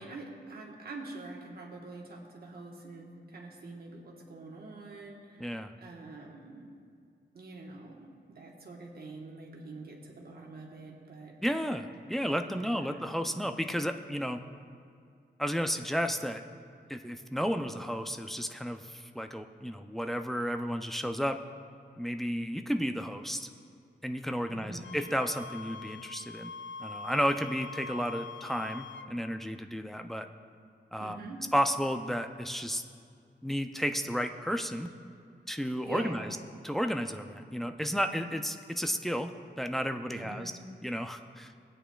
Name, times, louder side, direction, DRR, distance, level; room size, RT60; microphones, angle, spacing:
voice 1, 0.0-6.7 7.3-11.3 12.4-13.3 24.5-25.0 31.0-31.4 35.8-36.3 40.1-40.5, right 3 dB, 55° right, -1 dB, 1.2 m, -45 dB
voice 2, 5.4-5.7 11.4-14.4 15.4-16.4 16.9-21.4 22.0-23.5 24.0-26.5 26.8-30.3 30.9-31.2 31.5-32.8 33.4-34.9 35.5-36.4 36.6-39.3 39.6-40.5 40.8-41.5, equal, ahead, 6 dB, 0.3 m, -32 dB
Wind instrument woodwind instrument, 24.8-29.1, left 4 dB, 75° left, 0.4 m, -44 dB
20.5 x 8.8 x 2.3 m, 2.3 s
wide cardioid pair, 175°, 19 cm